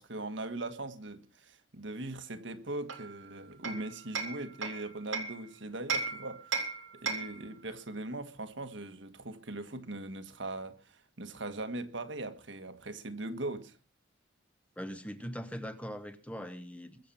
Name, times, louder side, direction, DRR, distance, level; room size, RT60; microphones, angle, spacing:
voice 1, 0.0-6.4 7.0-13.7, right 2 dB, 65° right, 1.7 m, -40 dB
Hammer, 2.9-5.4 5.9-7.5, right 4 dB, 85° right, 2.7 m, -36 dB
voice 2, 14.8-17.0, equal, 5° left, 1.1 m, -41 dB
23.0 x 7.8 x 5.7 m
head